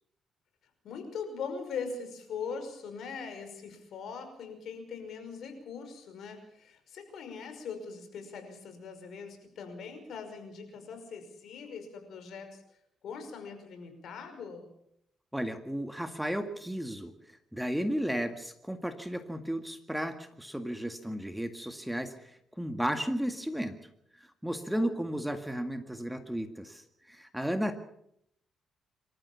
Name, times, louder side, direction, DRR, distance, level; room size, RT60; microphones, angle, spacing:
voice 1, 0.8-12.6 13.0-14.7 24.7-24.9, left 5 dB, 70° left, 7 dB, 5.5 m, -41 dB
voice 2, 15.3-17.1 17.5-22.3 22.6-23.8 24.4-27.8, equal, 5° right, 7 dB, 1.9 m, -34 dB
26.0 x 14.0 x 7.1 m, 0.73 s
cardioid pair, 90°, 0 cm